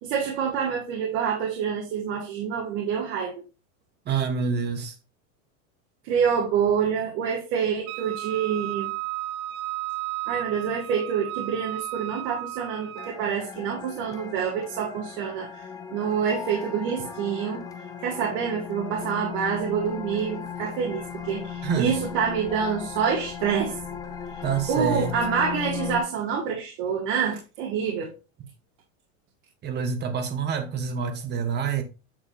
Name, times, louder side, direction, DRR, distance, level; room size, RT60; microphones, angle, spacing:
voice 1, 0.0-3.3 6.0-8.9 10.3-15.6 15.9-17.6 18.0-23.8 24.3-24.4 24.7-28.1, right 7 dB, 55° right, 2.4 m, -27 dB
voice 2, 4.0-4.9 21.6-21.9 24.4-25.1 29.6-31.8, right 6 dB, 25° right, 1.4 m, -27 dB
Wind instrument woodwind instrument, 7.9-13.2, right 15 dB, 80° right, 0.9 m, -34 dB
sound 1, 13.0-26.0, left 7 dB, 10° left, 0.6 m, -37 dB
9.1 x 6.1 x 2.7 m
supercardioid pair, 150°, 40 cm